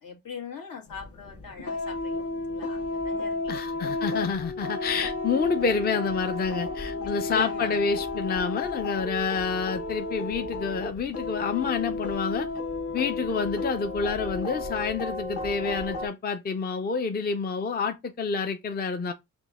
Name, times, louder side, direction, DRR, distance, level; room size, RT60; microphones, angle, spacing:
voice 1, 0.0-2.2 2.5-3.9 6.8-7.8, left 6 dB, 70° left, 1.5 m, -42 dB
sound 1, 0.9-16.1, left 2 dB, 45° left, 1.2 m, -32 dB
voice 2, 3.5-12.5 12.9-19.1, left 5 dB, 30° left, 0.5 m, -28 dB
5.1 x 2.2 x 3.6 m
cardioid pair, 110°, 35 cm